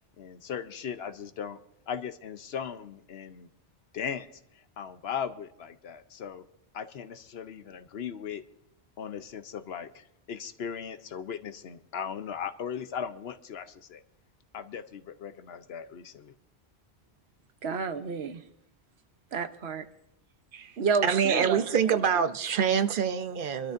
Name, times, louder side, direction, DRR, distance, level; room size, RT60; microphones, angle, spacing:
voice 1, 0.2-1.6 1.9-3.5 3.9-4.3 4.8-6.4 6.7-8.4 9.0-14.0 14.5-16.3, left 7 dB, 75° left, 1.0 m, -38 dB
voice 2, 17.6-18.4 19.3-19.9 20.8-22.0, right 5 dB, 80° right, 1.1 m, -30 dB
voice 3, 21.0-23.7, right 7 dB, 60° right, 0.8 m, -26 dB
24.0 x 12.5 x 2.6 m
omnidirectional pair, 1.1 m